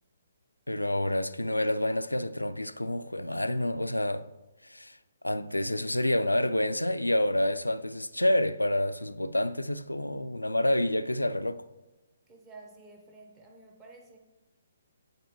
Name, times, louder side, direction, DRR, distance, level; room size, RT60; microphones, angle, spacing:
voice 1, 0.7-4.2 4.6-5.0 5.2-11.6, left 1 dB, 85° left, 0.3 m, -28 dB
voice 2, 12.3-14.2, right 3 dB, 15° right, 1.1 m, -51 dB
8.8 x 4.4 x 3.1 m
figure-of-eight pair, 135°, 0 cm